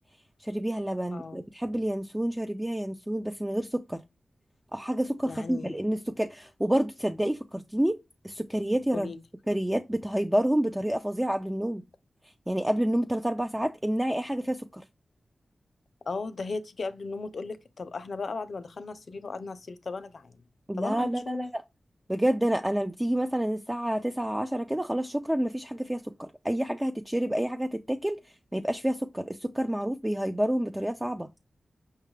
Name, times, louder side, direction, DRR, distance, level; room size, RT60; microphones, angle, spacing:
voice 1, 0.4-4.0 4.7-8.0 8.2-9.1 9.5-11.8 12.5-14.8 20.7-21.6 22.1-28.2 28.5-31.3, right 1 dB, 10° right, 0.3 m, -28 dB
voice 2, 5.3-5.8 8.9-9.2 16.1-20.4 20.8-21.5, left 3 dB, 65° left, 0.5 m, -36 dB
5.6 x 2.3 x 3.1 m
wide cardioid pair, 90°, 0 cm